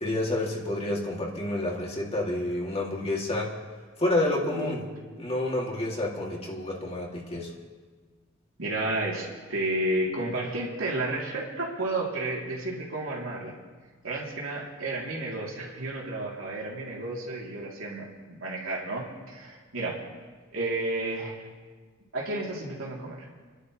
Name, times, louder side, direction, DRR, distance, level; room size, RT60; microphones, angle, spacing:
voice 1, 0.0-3.5 4.0-4.8 5.2-7.5, left 1 dB, 30° left, -2 dB, 2.6 m, -29 dB
voice 2, 4.4-5.3 8.6-13.6 14.0-20.0 20.5-21.3 22.1-23.3, right 2 dB, 85° right, -3 dB, 3.1 m, -32 dB
29.5 x 11.5 x 3.2 m, 1.4 s
head